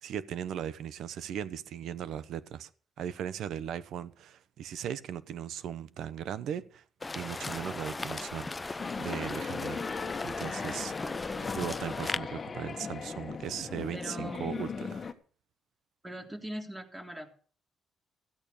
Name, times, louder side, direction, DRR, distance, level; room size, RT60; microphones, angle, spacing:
voice 1, 0.0-2.7 3.0-6.8 7.1-10.9 11.5-14.7 14.9-15.1, right 9 dB, 75° right, 0.9 m, -38 dB
sound 1, 7.0-12.2, left 3 dB, 20° left, 0.6 m, -38 dB
sound 2, 8.8-15.1, left 5 dB, 40° left, 1.4 m, -38 dB
voice 2, 11.0-11.6 13.9-14.6 16.0-17.3, right 1 dB, 15° right, 3.4 m, -42 dB
15.0 x 8.8 x 6.7 m
cardioid pair, 90°, 0 cm